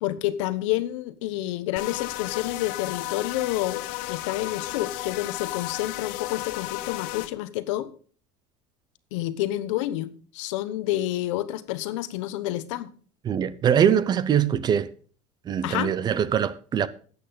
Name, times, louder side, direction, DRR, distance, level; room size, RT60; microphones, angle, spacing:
voice 1, 0.0-7.9 9.1-10.1 10.3-12.9 15.6-15.9, left 15 dB, 90° left, 1.0 m, -29 dB
sound 1, 1.8-7.3, left 17 dB, 65° left, 0.7 m, -33 dB
voice 2, 13.2-14.9 15.5-16.9, right 8 dB, 25° right, 0.6 m, -22 dB
12.5 x 8.5 x 3.9 m
cardioid pair, 145°, 15 cm